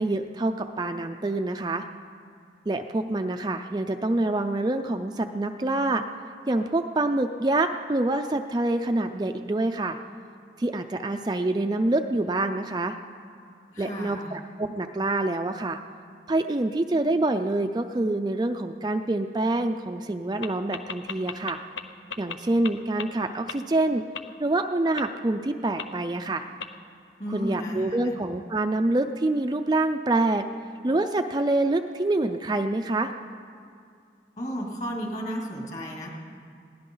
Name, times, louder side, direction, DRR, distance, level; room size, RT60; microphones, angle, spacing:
voice 1, 0.0-1.8 2.7-6.0 6.5-10.0 10.6-12.9 13.8-15.8 16.3-21.6 22.2-24.0 24.4-26.5 27.3-30.5 30.8-33.1, right 2 dB, 25° right, 6 dB, 0.4 m, -26 dB
voice 2, 13.7-14.3 27.2-28.1 34.4-36.1, equal, 40° left, -2 dB, 2.8 m, -33 dB
sound 1, 20.4-20.5 20.7-21.8 22.1-22.3 22.6-22.7 23.0-23.1 23.5-23.6 24.1-24.2 25.0-25.1 25.8-25.9 26.6-26.7, left 6 dB, 90° left, 0.8 m, -33 dB
21.5 x 17.0 x 3.9 m, 2.3 s
head